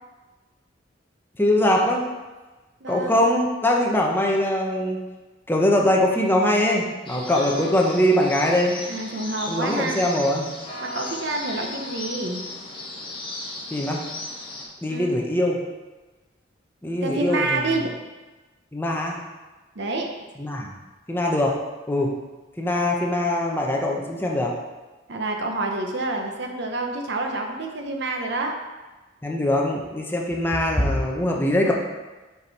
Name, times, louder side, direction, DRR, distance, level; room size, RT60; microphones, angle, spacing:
voice 1, 1.4-2.1 2.9-5.0 5.5-8.8 9.5-10.5 13.7-14.0 14.8-15.6 16.8-17.6 18.7-19.2 20.4-20.7 21.1-21.6 21.9-22.1 22.6-24.5 29.2-31.7, left 1 dB, 10° left, -1 dB, 0.8 m, -22 dB
voice 2, 2.8-3.3 8.9-10.0 10.8-12.4 14.9-15.2 17.0-17.9 19.7-20.1 25.1-28.5, right 2 dB, 65° right, 3 dB, 0.9 m, -28 dB
sound 1, 7.1-14.7, left 2 dB, 25° left, 1.2 m, -36 dB
7.0 x 5.2 x 4.1 m, 1.2 s
head